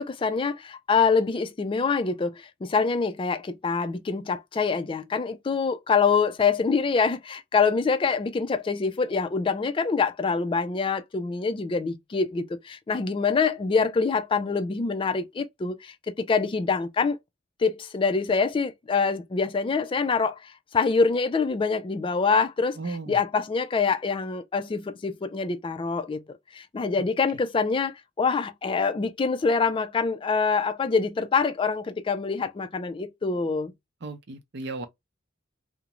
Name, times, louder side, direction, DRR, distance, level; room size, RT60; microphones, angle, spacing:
voice 1, 0.0-17.2 17.6-22.8 23.1-33.7, left 5 dB, 25° left, 0.3 m, -25 dB
voice 2, 22.8-23.2 27.3-27.4 34.0-34.9, right 3 dB, 60° right, 0.6 m, -35 dB
2.5 x 2.1 x 2.9 m
head